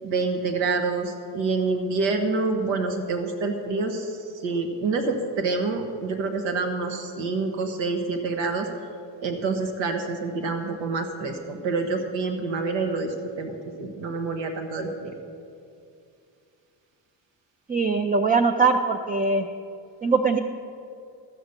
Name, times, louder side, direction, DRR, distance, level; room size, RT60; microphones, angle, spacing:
voice 1, 0.0-8.7 9.2-15.2, right 3 dB, 90° right, 5 dB, 1.4 m, -27 dB
voice 2, 17.7-19.5 20.0-20.4, right 4 dB, 20° right, 6 dB, 0.4 m, -21 dB
13.0 x 7.0 x 6.6 m, 2.4 s
cardioid pair, 115°, 44 cm